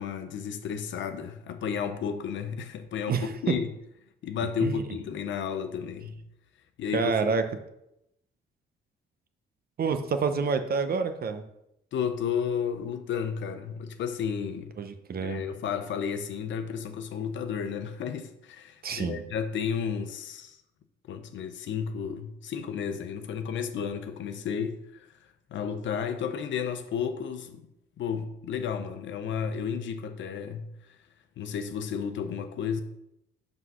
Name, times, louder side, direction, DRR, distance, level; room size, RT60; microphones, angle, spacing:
voice 1, 0.0-3.7 4.2-6.2 6.8-7.3 11.9-14.8 15.2-20.6 21.1-25.1 25.5-27.6 28.0-30.7 31.4-32.8, left 7 dB, 70° left, 0.8 m, -32 dB
voice 2, 6.9-7.4 9.8-11.4 14.8-15.4 18.8-19.2, right 5 dB, 50° right, 0.8 m, -28 dB
5.7 x 4.0 x 6.2 m
cardioid pair, 90°, 20 cm